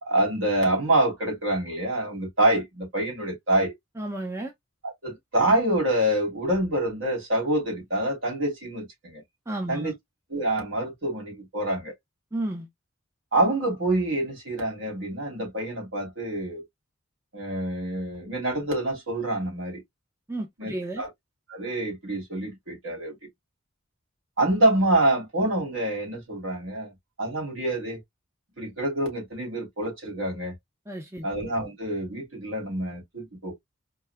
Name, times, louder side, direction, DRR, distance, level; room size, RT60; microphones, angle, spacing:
voice 1, 0.0-3.7 4.8-9.2 9.7-9.9 10.3-11.9 13.3-16.6 17.3-19.8 20.6-21.1 21.5-23.2 24.4-26.9 27.2-28.0 28.6-30.5 31.2-33.6, right 1 dB, 65° right, 3.2 m, -26 dB
voice 2, 4.0-4.5 9.5-9.9 12.3-12.7 20.3-21.0 30.9-31.3, right 1 dB, 15° right, 0.7 m, -32 dB
4.6 x 2.7 x 2.2 m
head